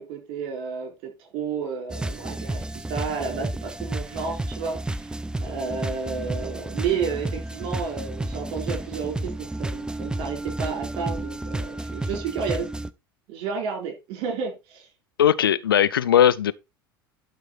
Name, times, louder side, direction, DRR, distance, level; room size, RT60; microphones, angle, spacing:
voice 1, 0.0-5.1 5.4-12.7 13.3-14.9, right 5 dB, 50° right, 4.2 m, -31 dB
sound 1, 1.9-12.9, right 2 dB, 5° right, 0.6 m, -32 dB
voice 2, 15.2-16.5, left 10 dB, 75° left, 0.5 m, -18 dB
12.0 x 4.8 x 4.3 m
figure-of-eight pair, 75°, 12 cm